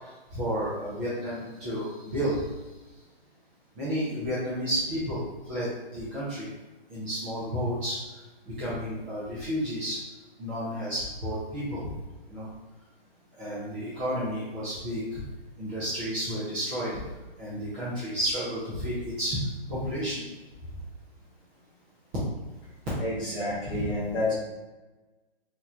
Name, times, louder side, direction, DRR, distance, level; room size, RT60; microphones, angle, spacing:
voice 1, 0.0-2.4 3.8-6.5 6.9-8.0 8.5-10.0 10.4-11.9 12.3-12.5 13.4-15.2 15.6-17.0 17.4-19.4 19.7-20.2 23.7-23.9, equal, 15° right, -11 dB, 0.6 m, -31 dB
voice 2, 23.0-24.3, left 1 dB, 15° left, -8 dB, 1.0 m, -29 dB
4.1 x 2.9 x 2.4 m, 1.2 s
hypercardioid pair, 150°, 31 cm